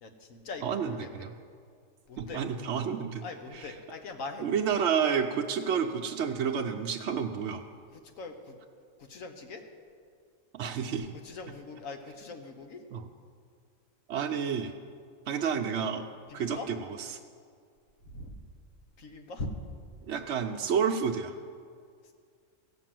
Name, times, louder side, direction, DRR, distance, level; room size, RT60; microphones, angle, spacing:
voice 1, 0.0-1.2 2.1-2.4 3.2-4.7 7.9-8.5 9.0-9.6 11.1-12.8 16.3-16.7 18.1-18.4 19.0-19.5 22.0-22.1, left 3 dB, 80° left, 4 dB, 1.5 m, -42 dB
voice 2, 0.6-1.3 2.2-3.2 4.4-7.6 10.5-11.1 12.9-13.0 14.1-14.7 15.3-16.0 16.3-16.8 20.1-21.4, right 7 dB, 65° right, 3 dB, 0.9 m, -30 dB
16.5 x 6.0 x 7.6 m, 2.1 s
omnidirectional pair, 1.4 m